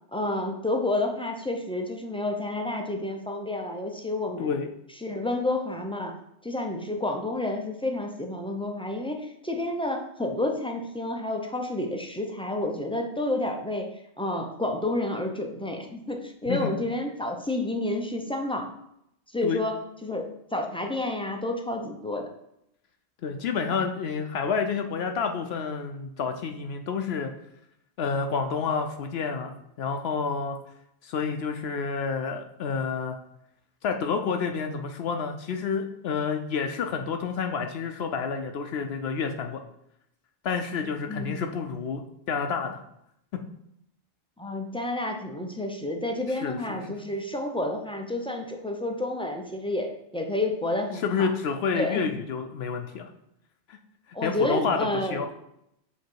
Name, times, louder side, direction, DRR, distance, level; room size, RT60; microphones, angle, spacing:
voice 1, 0.1-4.6 5.0-6.1 6.4-13.9 14.2-18.7 19.3-22.3 41.1-41.5 44.4-51.3 51.7-52.1 54.1-55.3, left 1 dB, 10° left, 3 dB, 0.4 m, -30 dB
voice 2, 23.2-27.3 28.0-30.6 31.0-33.2 33.8-39.6 40.4-42.0 42.3-42.8 46.3-46.8 51.0-53.1 53.7-53.8 54.2-55.3, left 5 dB, 70° left, 5 dB, 0.8 m, -29 dB
7.2 x 3.0 x 4.6 m, 0.78 s
omnidirectional pair, 1.2 m